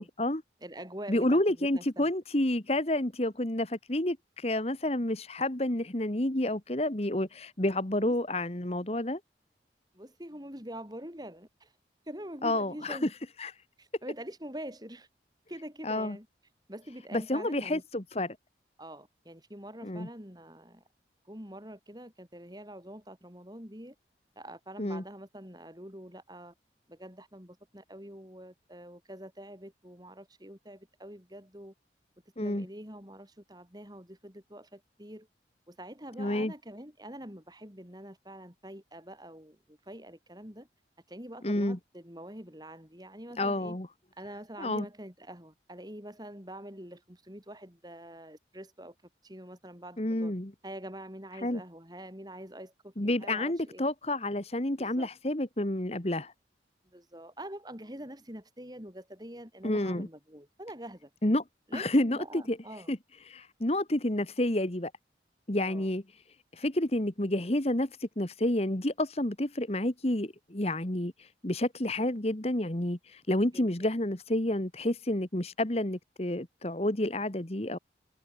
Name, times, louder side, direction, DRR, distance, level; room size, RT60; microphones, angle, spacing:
voice 1, 0.0-0.4 1.1-9.2 12.4-13.1 13.4-13.5 15.8-16.2 17.1-18.4 19.8-20.1 24.8-25.0 32.4-32.7 36.2-36.5 41.4-41.8 43.4-43.9 44.6-44.8 50.0-50.5 51.4-51.6 53.0-56.3 59.6-60.1 61.2-61.4 61.7-62.6 62.9-63.0 63.3-64.9 65.5-66.0 66.5-77.8, left 1 dB, 35° left, 1.7 m, -29 dB
voice 2, 0.6-2.1 8.0-8.2 9.9-11.7 12.1-13.1 13.8-15.1 15.5-16.3 16.7-17.8 18.8-20.8 21.2-23.9 24.4-26.5 26.9-31.7 32.4-35.3 35.7-40.7 41.1-43.8 44.2-48.9 49.2-50.3 50.6-53.8 54.8-55.1 56.8-61.1 61.7-62.9 65.6-65.9 73.5-73.7, right 1 dB, 20° right, 6.3 m, -45 dB
head